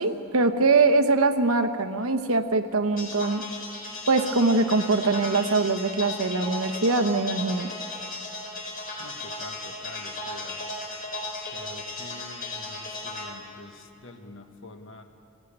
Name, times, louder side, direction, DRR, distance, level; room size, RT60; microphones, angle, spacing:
voice 1, 0.0-3.4 4.1-7.7, right 3 dB, 70° right, 7 dB, 1.2 m, -23 dB
sound 1, 3.0-13.2, left 2 dB, 45° left, 4.3 m, -36 dB
voice 2, 9.0-10.7 11.5-15.1, left 2 dB, 60° left, 5 dB, 1.5 m, -46 dB
18.5 x 18.0 x 8.8 m, 2.7 s
head